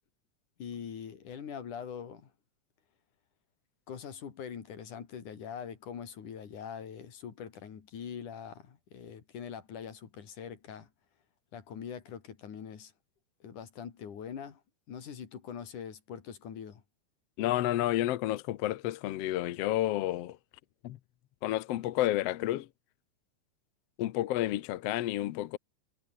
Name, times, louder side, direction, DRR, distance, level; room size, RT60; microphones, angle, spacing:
voice 1, 0.6-2.3 3.9-10.9 11.5-12.9 13.4-14.6 14.9-16.8, left 7 dB, 85° left, 4.2 m, -43 dB
voice 2, 17.4-20.4 20.8-21.0 21.4-22.7 24.0-25.6, left 14 dB, 65° left, 1.7 m, -30 dB
omnidirectional pair, 3.5 m